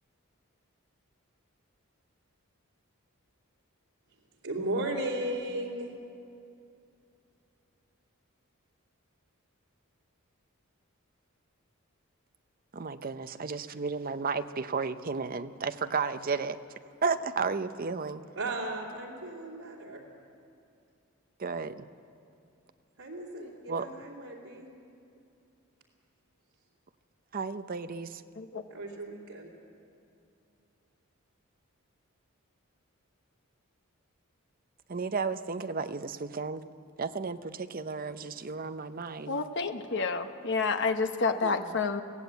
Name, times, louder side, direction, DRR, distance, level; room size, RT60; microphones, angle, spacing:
voice 1, 4.4-5.9 18.3-20.0 23.0-24.7 28.7-29.5, right 1 dB, 85° right, -4 dB, 2.9 m, -35 dB
voice 2, 12.7-16.6 17.0-18.2 21.4-21.8 23.7-23.9 27.3-28.2 34.9-36.6 37.0-39.4 41.4-41.8, right 4 dB, 40° right, 11 dB, 0.7 m, -33 dB
voice 3, 39.3-42.0, left 4 dB, 55° left, 7 dB, 1.1 m, -29 dB
22.5 x 16.5 x 8.3 m, 2.6 s
head